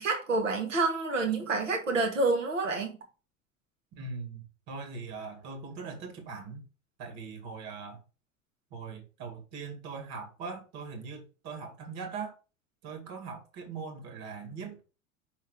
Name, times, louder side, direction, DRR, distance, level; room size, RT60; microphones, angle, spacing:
voice 1, 0.0-3.0, right 3 dB, 75° right, 2.0 m, -28 dB
voice 2, 3.9-6.7 7.0-8.0 8.7-12.4 12.8-14.8, right 5 dB, 40° right, 2.1 m, -41 dB
5.6 x 4.2 x 4.8 m
figure-of-eight pair, 75°, 38 cm